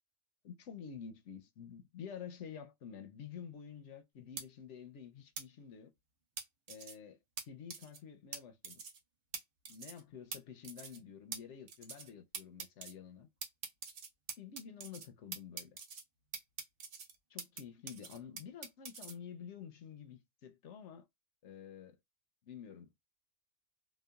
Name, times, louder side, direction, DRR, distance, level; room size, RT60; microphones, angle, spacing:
voice 1, 0.4-5.9 6.7-7.2 7.4-8.8 9.7-13.3 14.4-15.8 17.3-21.0 21.4-22.0 22.4-22.9, left 7 dB, 65° left, 0.8 m, -49 dB
sound 1, 4.4-4.5 5.4-5.5 6.4-6.9 7.4-7.5 7.7-8.0 8.3-8.4 8.6-9.0 9.3-9.4 9.6-10.0 10.3-10.4 10.6-11.0 11.3-11.4 11.7-12.1 12.3-12.9 13.4-15.1 15.3-16.0 16.3-17.6 17.9-19.1, right 5 dB, 55° right, 0.7 m, -44 dB
2.9 x 2.2 x 2.2 m
omnidirectional pair, 1.4 m